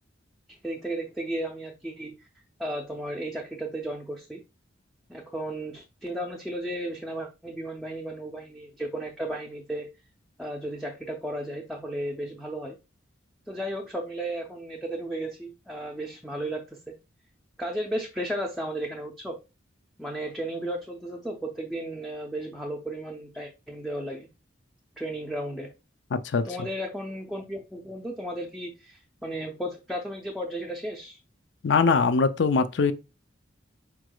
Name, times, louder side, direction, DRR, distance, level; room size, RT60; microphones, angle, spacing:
voice 1, 0.6-2.2 2.6-4.4 5.1-9.9 10.4-12.8 13.5-16.9 17.6-19.4 20.0-24.3 25.0-25.7 26.4-31.2, right 1 dB, ahead, 0.5 m, -34 dB
voice 2, 26.1-26.5 31.6-32.9, left 4 dB, 65° left, 0.5 m, -22 dB
4.9 x 4.6 x 2.3 m
head